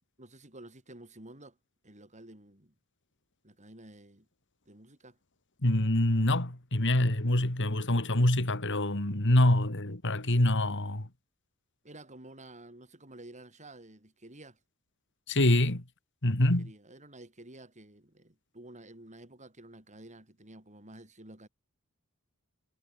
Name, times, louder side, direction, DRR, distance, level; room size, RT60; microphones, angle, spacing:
voice 1, 0.2-1.6 1.8-2.7 3.4-4.3 4.7-5.2 11.8-14.6 16.4-21.5, right 1 dB, 35° right, 8.0 m, -51 dB
voice 2, 5.6-11.1 15.3-15.8 16.2-16.7, left 1 dB, 60° left, 3.1 m, -25 dB
head